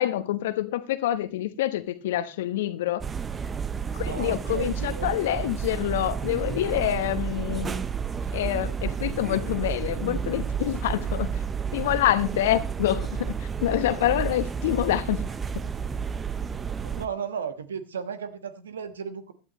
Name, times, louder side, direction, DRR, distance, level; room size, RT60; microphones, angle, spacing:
voice 1, 0.0-3.0 3.9-7.8 8.3-11.4 11.7-15.3 15.5-15.7, left 13 dB, 65° left, 1.0 m, -26 dB
sound 1, 3.0-17.1, right 6 dB, 25° right, 0.8 m, -31 dB
voice 2, 4.1-5.5 16.8-19.3, right 7 dB, 80° right, 1.3 m, -35 dB
16.5 x 12.0 x 3.1 m
figure-of-eight pair, 80°, 0 cm